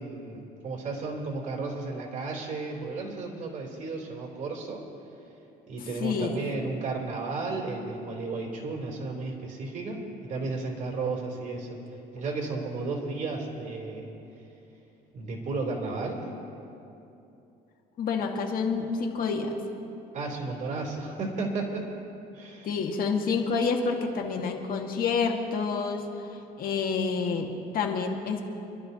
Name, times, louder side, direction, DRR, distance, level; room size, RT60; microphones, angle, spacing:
voice 1, 0.0-4.8 5.7-11.8 12.1-14.1 15.1-16.3 20.1-21.8 22.3-22.7, right 3 dB, 45° right, -2 dB, 3.3 m, -33 dB
voice 2, 6.0-6.4 18.0-19.6 22.6-26.0 26.6-28.4, left 5 dB, 60° left, 2 dB, 1.7 m, -28 dB
26.5 x 12.0 x 2.8 m, 2.8 s
cardioid pair, 110°, 17 cm